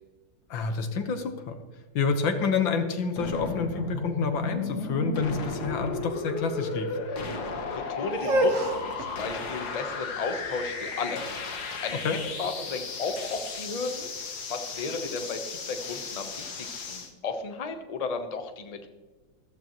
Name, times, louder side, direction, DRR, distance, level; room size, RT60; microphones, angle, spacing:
voice 1, 0.5-1.6 2.0-6.9 12.0-12.2, left 5 dB, 90° left, 6 dB, 2.0 m, -28 dB
sound 1, 3.2-17.1, left 3 dB, 60° left, 1.8 m, -34 dB
voice 2, 7.7-11.2 11.8-12.0 12.4-14.1 14.5-18.9, left 4 dB, 30° left, 6 dB, 0.8 m, -34 dB
sound 2, 8.1-14.0, right 1 dB, 50° right, 1.4 m, -31 dB
14.5 x 14.0 x 3.1 m, 1.3 s
omnidirectional pair, 2.0 m